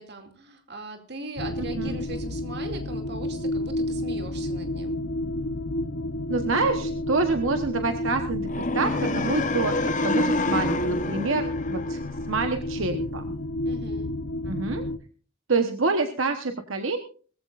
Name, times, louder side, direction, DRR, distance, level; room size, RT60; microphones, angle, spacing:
voice 1, 0.0-5.0 13.6-14.1, right 2 dB, 50° right, 5 dB, 2.5 m, -39 dB
sound 1, 1.4-15.0, left 1 dB, 65° left, 0.8 m, -31 dB
voice 2, 1.6-2.0 6.3-9.7 10.0-12.0 12.3-13.2 14.4-14.8 15.5-17.0, right 3 dB, 75° right, 6 dB, 1.2 m, -27 dB
sound 2, 8.5-12.6, left 2 dB, 35° left, 1.0 m, -27 dB
20.5 x 15.0 x 2.5 m, 0.40 s
head